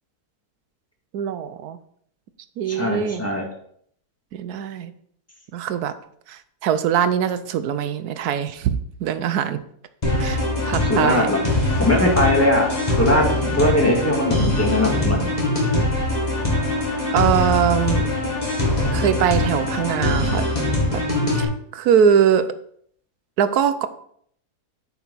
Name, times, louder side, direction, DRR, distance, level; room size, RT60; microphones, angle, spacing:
voice 1, 1.1-1.8 2.6-3.2 4.3-4.9 5.5-5.9 6.3-9.6 10.2-11.3 17.1-18.1 18.9-20.4 20.9-21.0 21.3-22.6 23.4-23.9, right 8 dB, 75° right, 12 dB, 1.2 m, -22 dB
voice 2, 2.7-3.4 10.8-11.4 11.8-12.7 13.0-13.2 13.5-15.2, left 1 dB, 10° left, -1 dB, 2.0 m, -20 dB
sound 1, 10.0-21.4, left 1 dB, 25° left, 2.1 m, -22 dB
8.5 x 5.7 x 4.1 m, 0.65 s
omnidirectional pair, 1.7 m